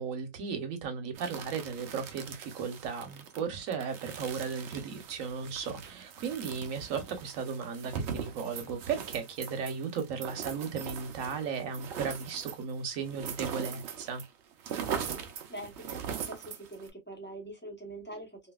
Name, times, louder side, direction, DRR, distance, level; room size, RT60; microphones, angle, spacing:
voice 1, 0.0-14.2, right 6 dB, 55° right, 1.1 m, -35 dB
sound 1, 1.1-14.3 14.5-16.9, right 7 dB, 75° right, 0.6 m, -41 dB
voice 2, 15.5-18.4, right 1 dB, 15° left, 0.4 m, -44 dB
2.9 x 2.7 x 2.2 m
omnidirectional pair, 1.8 m